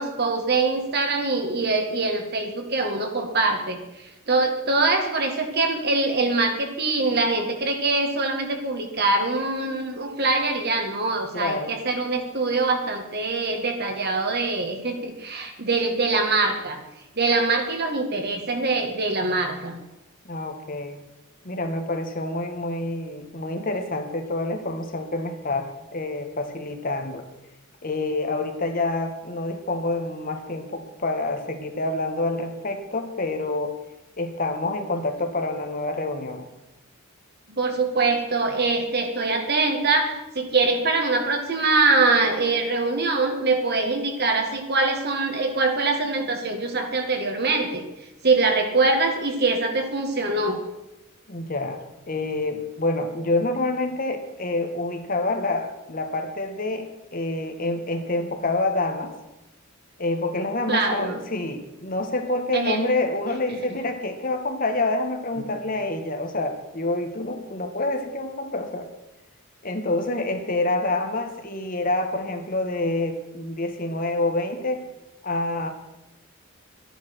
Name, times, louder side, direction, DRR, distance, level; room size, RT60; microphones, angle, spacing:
voice 1, 0.0-3.8 4.3-16.8 17.2-19.8 37.5-47.8 48.2-50.6 60.7-61.2 62.5-62.8, right 3 dB, 50° right, 4 dB, 2.0 m, -23 dB
voice 2, 11.3-11.7 20.3-21.0 21.4-27.2 27.8-33.7 34.2-36.5 51.3-51.8 52.1-59.1 60.0-68.9 69.6-74.8 75.2-75.7, left 2 dB, 40° left, 5 dB, 1.5 m, -27 dB
12.5 x 10.5 x 6.2 m, 0.95 s
head